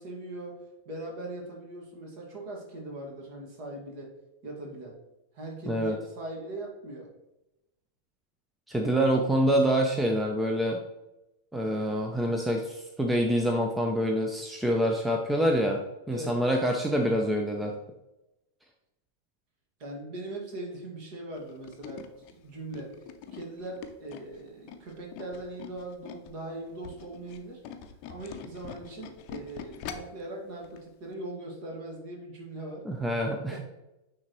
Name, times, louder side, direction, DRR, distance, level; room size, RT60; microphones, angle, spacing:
voice 1, 0.0-4.2 4.4-5.0 5.3-7.1 8.7-9.1 16.1-16.4 19.8-22.1 22.4-23.0 23.3-27.6 28.1-32.9 33.5-33.6, right 2 dB, 45° right, 1 dB, 1.9 m, -40 dB
voice 2, 5.7-6.0 8.7-10.8 11.5-15.8 16.1-17.8 32.8-33.6, equal, 5° right, 2 dB, 0.6 m, -26 dB
Tools, 21.4-26.4 26.7-30.2 30.6-30.8 31.1-31.2, left 8 dB, 45° left, 0.6 m, -44 dB
9.4 x 3.5 x 3.1 m, 0.93 s
figure-of-eight pair, 90°, 0 cm